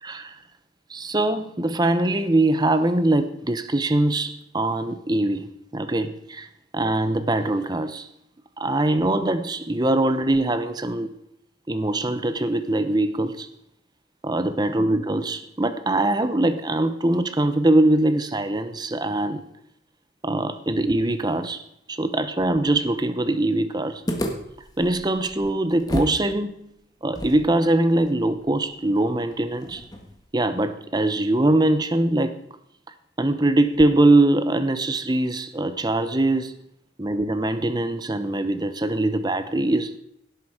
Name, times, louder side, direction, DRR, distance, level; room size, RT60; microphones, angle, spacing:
voice 1, 0.0-0.4 0.9-6.5 6.7-8.1 8.6-11.1 11.7-13.5 14.2-19.4 20.2-21.6 21.9-24.0 24.8-26.7 27.0-29.8 30.3-32.4 33.2-36.6 37.0-40.0, right 2 dB, 20° right, 0.8 m, -22 dB
sound 1, 24.1-26.2 26.5-26.6 27.1-30.3, equal, 20° left, 1.6 m, -33 dB
17.0 x 7.7 x 4.9 m
head